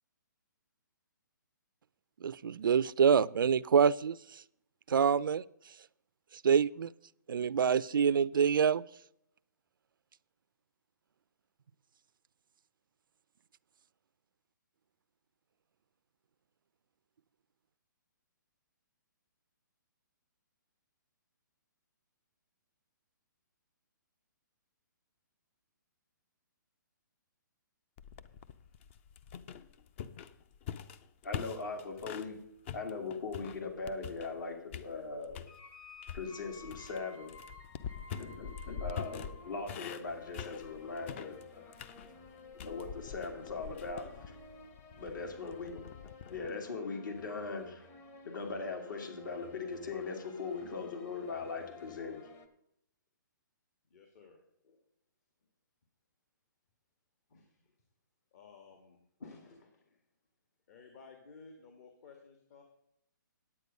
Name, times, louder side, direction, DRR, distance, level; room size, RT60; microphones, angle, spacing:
voice 1, 2.2-4.4 4.9-5.4 6.4-6.9 7.3-8.8, right 7 dB, 80° right, 20 dB, 0.4 m, -26 dB
sound 1, 28.0-32.3 32.7-34.4 34.7-35.5 36.0-46.5, left 8 dB, 35° left, 0.5 m, -45 dB
voice 2, 31.2-32.4 32.7-35.4 36.1-37.3 38.2-41.9 42.5-44.1 45.0-45.9 46.3-47.9 48.2-52.2, left 4 dB, 65° left, 4 dB, 2.3 m, -40 dB
sound 2, 35.5-52.5, left 4 dB, 20° left, 0.8 m, -54 dB
voice 3, 45.1-45.6 53.9-54.4 54.6-54.8 57.3-57.7 58.3-60.0 60.7-62.6, left 4 dB, 50° left, 4 dB, 1.6 m, -55 dB
9.6 x 8.7 x 5.3 m, 0.76 s
hypercardioid pair, 145°, 11 cm